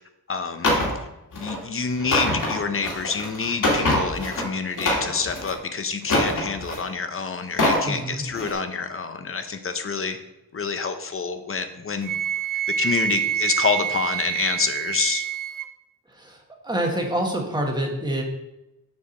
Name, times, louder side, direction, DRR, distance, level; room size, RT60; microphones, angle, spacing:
voice 1, 0.3-0.7 1.3-10.2 10.5-12.1 12.8-15.2, left 5 dB, 35° left, 8 dB, 0.7 m, -27 dB
sound 1, 0.6-0.9 1.3-1.6 2.0-4.4 4.7-5.5 6.0-6.9 7.4-7.9 8.3-8.5, left 1 dB, 60° left, 2.2 m, -24 dB
voice 2, 7.8-8.2 16.1-18.2, right 1 dB, 10° right, 0 dB, 1.3 m, -27 dB
Wind instrument woodwind instrument, 12.0-15.7, right 9 dB, 60° right, 0.6 m, -27 dB
6.9 x 4.7 x 6.4 m, 0.91 s
wide cardioid pair, 170°, 36 cm